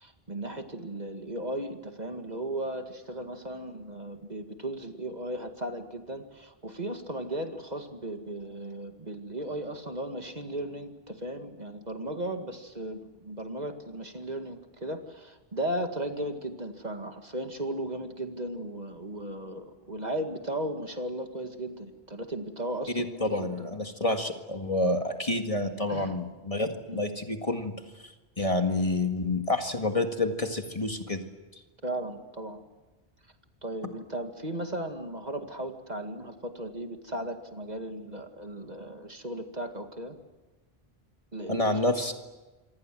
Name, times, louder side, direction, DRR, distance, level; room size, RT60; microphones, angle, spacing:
voice 1, 0.0-23.7 25.9-26.2 26.9-27.0 31.8-32.6 33.6-40.2 41.3-41.8, right 1 dB, 45° right, 5 dB, 2.2 m, -36 dB
voice 2, 22.9-27.7 28.4-31.2 41.5-42.1, left 2 dB, 35° left, 5 dB, 2.0 m, -28 dB
27.5 x 25.5 x 7.8 m, 1.2 s
omnidirectional pair, 1.0 m